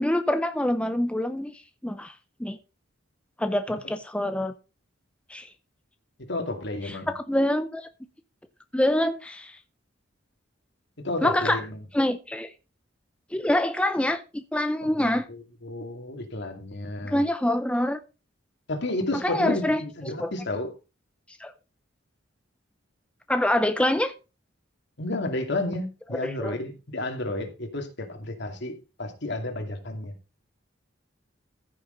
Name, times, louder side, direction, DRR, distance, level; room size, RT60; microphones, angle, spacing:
voice 1, 0.0-1.5 1.8-2.1 2.4-2.6 3.4-4.5 5.3-5.5 6.8-7.9 8.7-9.6 11.2-11.6 11.9-12.5 13.3-15.3 17.0-18.0 19.2-19.8 20.2-20.3 21.4-21.5 23.3-24.1 26.1-26.6, left 1 dB, 5° left, 0.6 m, -25 dB
voice 2, 6.3-7.1 11.0-11.8 15.0-17.2 18.7-20.7 25.0-30.1, left 2 dB, 60° left, 2.5 m, -32 dB
15.0 x 6.7 x 3.9 m
head